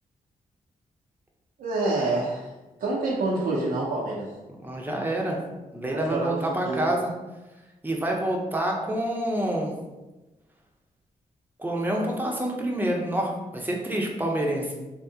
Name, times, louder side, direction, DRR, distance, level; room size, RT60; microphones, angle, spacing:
voice 1, 1.6-2.5 2.8-4.3 5.9-6.4 6.6-6.9, right 2 dB, 80° right, -5 dB, 0.6 m, -27 dB
voice 2, 4.6-5.4 5.7-7.1 7.8-9.7 11.6-14.7, right 1 dB, 10° right, -1 dB, 0.7 m, -27 dB
3.5 x 2.0 x 2.7 m, 1.1 s
cardioid pair, 65°, 15 cm